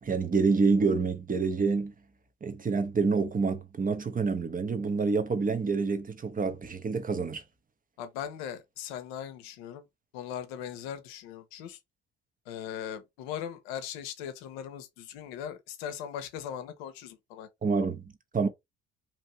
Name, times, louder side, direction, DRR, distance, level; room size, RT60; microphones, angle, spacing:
voice 1, 0.0-1.9 2.4-7.4 17.6-18.5, right 4 dB, 30° right, 0.8 m, -27 dB
voice 2, 8.0-9.8 10.1-11.8 12.5-17.5, left 9 dB, 85° left, 0.7 m, -39 dB
3.0 x 2.6 x 3.1 m
hypercardioid pair, 55°, 30 cm